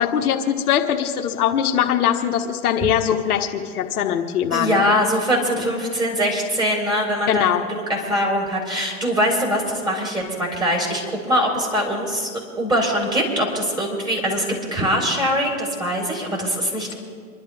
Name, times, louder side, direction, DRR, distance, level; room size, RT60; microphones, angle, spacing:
voice 1, 0.0-4.8 7.3-7.6, left 9 dB, 70° left, 3 dB, 1.4 m, -21 dB
voice 2, 4.5-11.0 11.3-12.3 12.6-14.4 14.7-16.9, equal, 10° right, -1 dB, 4.3 m, -22 dB
27.5 x 11.5 x 3.5 m, 2.1 s
hypercardioid pair, 115°, 45 cm